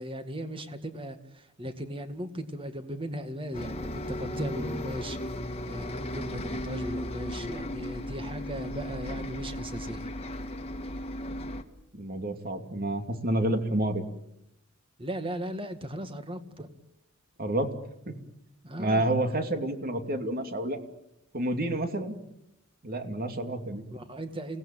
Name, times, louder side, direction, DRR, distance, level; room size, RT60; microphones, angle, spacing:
voice 1, 0.0-5.2 5.6-10.1 15.0-16.7 18.6-19.1 23.9-24.6, equal, 25° right, 9 dB, 2.1 m, -37 dB
Bus, 3.5-11.6, left 1 dB, 30° left, 1.7 m, -36 dB
voice 2, 11.9-14.0 17.4-17.7 18.1-18.2 18.8-20.8 21.3-22.2 22.8-23.8, right 1 dB, 45° right, 7 dB, 2.7 m, -29 dB
29.0 x 18.0 x 9.0 m, 0.82 s
head